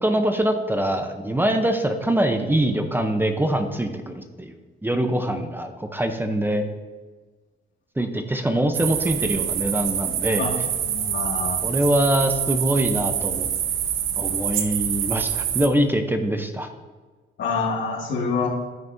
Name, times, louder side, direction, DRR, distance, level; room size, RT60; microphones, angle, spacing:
voice 1, 0.0-6.6 8.0-10.5 11.6-13.5 14.2-16.7, right 1 dB, 10° right, 6 dB, 0.7 m, -23 dB
sound 1, 8.7-15.7, right 9 dB, 80° right, 0.8 m, -26 dB
voice 2, 10.8-11.6 17.4-18.5, left 4 dB, 70° left, -2 dB, 2.2 m, -26 dB
14.0 x 5.9 x 2.7 m, 1.3 s
cardioid pair, 90°, 20 cm